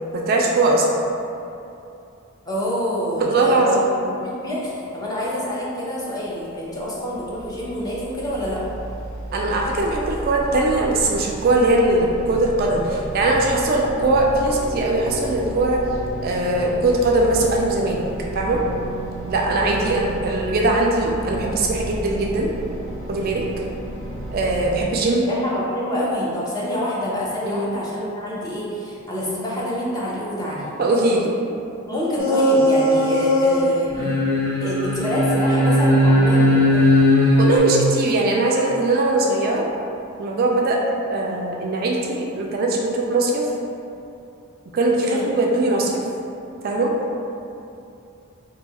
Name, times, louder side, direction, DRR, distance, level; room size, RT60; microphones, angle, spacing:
voice 1, 0.1-0.9 3.2-3.9 6.8-6.9 9.3-15.8 16.2-18.0 18.3-18.6 19.3-22.5 23.1-23.5 24.3-25.3 27.4-27.7 30.8-31.4 37.4-39.6 40.2-40.8 41.1-43.5 44.7-46.0 46.6-46.9, right 2 dB, 45° right, -1 dB, 0.3 m, -20 dB
voice 2, 2.5-8.6 19.8-19.9 25.3-30.7 31.9-34.2 34.6-36.8 45.0-45.3, equal, 20° left, -6 dB, 0.5 m, -27 dB
sound 1, 6.4-24.9, right 1 dB, 5° right, 1.2 m, -33 dB
sound 2, 32.2-33.6 33.9-37.6, left 1 dB, 80° left, 1.1 m, -17 dB
2.7 x 2.3 x 4.0 m, 2.7 s
head